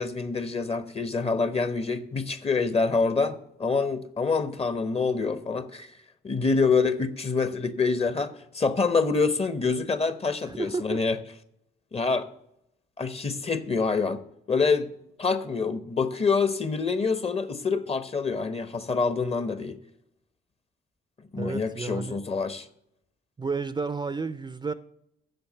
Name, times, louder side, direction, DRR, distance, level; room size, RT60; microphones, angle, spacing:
voice 1, 0.0-5.9 6.2-11.2 11.9-12.3 13.0-14.9 15.2-19.8 21.3-22.7, left 4 dB, 30° left, 0.9 m, -26 dB
voice 2, 10.5-11.0 21.4-22.2 23.4-24.7, right 4 dB, 20° right, 0.5 m, -31 dB
7.9 x 6.8 x 6.6 m
supercardioid pair, 65°, 20 cm